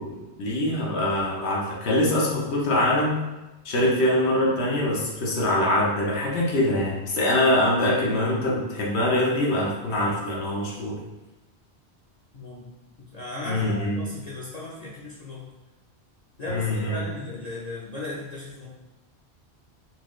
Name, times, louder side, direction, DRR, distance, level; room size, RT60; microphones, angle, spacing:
voice 1, 0.0-3.2 3.6-11.0 13.5-14.0 16.5-17.0, left 1 dB, 80° left, -3 dB, 1.1 m, -24 dB
voice 2, 12.3-12.7 13.0-15.5 16.4-18.7, left 2 dB, 45° left, -7 dB, 0.6 m, -36 dB
4.3 x 2.3 x 3.0 m, 1.1 s
omnidirectional pair, 1.1 m